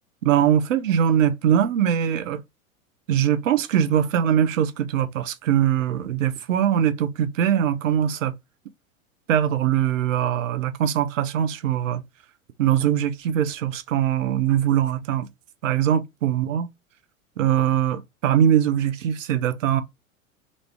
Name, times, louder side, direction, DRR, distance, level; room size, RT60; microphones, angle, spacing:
voice 1, 0.2-2.4 3.1-8.4 9.3-12.0 12.6-15.3 15.6-16.7 17.4-19.8, right 9 dB, 65° right, 0.7 m, -22 dB
3.1 x 2.6 x 3.3 m
figure-of-eight pair, 90°, 42 cm